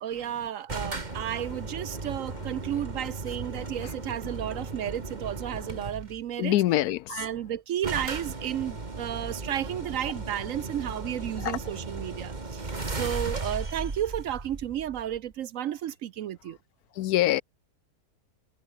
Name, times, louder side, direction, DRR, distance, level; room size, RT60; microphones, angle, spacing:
voice 1, 0.0-6.6 7.1-16.6, right 11 dB, 65° right, 1.0 m, -33 dB
sound 1, 0.7-6.2 7.2-7.3 7.5-7.6 7.8-15.3, right 3 dB, 30° right, 2.1 m, -36 dB
voice 2, 6.4-7.0 11.4-11.5 17.0-17.4, left 14 dB, 75° left, 1.1 m, -23 dB
omnidirectional pair, 1.6 m